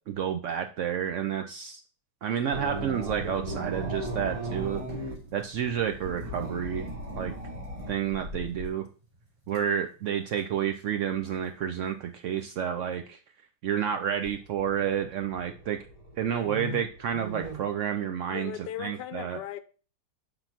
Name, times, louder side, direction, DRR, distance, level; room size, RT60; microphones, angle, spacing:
voice 1, 0.1-1.8 2.2-4.8 5.3-6.9 7.2-7.3 7.9-8.9 9.5-13.2 13.6-15.8 16.2-18.5 18.8-19.4, right 9 dB, 75° right, 0.7 m, -30 dB
sound 1, 2.5-8.7 14.2-17.6, right 1 dB, 25° right, 0.9 m, -37 dB
sound 2, 4.7-12.6, right 1 dB, 45° right, 5.3 m, -58 dB
voice 2, 16.2-16.6 18.3-19.6, left 11 dB, 75° left, 1.3 m, -38 dB
6.9 x 3.8 x 5.8 m
omnidirectional pair, 1.9 m